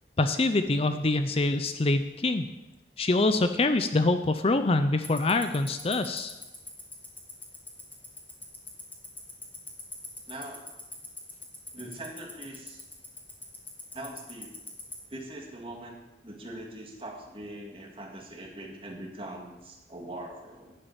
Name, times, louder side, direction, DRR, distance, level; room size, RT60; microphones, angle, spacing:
voice 1, 0.2-2.4 3.0-6.3, left 2 dB, 35° left, 9 dB, 0.5 m, -25 dB
Tick-tock, 5.0-14.9, left 3 dB, 10° left, 1.9 m, -39 dB
voice 2, 10.3-10.6 11.7-12.8 13.9-14.6 15.1-16.0 16.2-20.7, right 1 dB, 30° right, 1 dB, 2.1 m, -42 dB
11.0 x 8.4 x 7.3 m, 1.1 s
head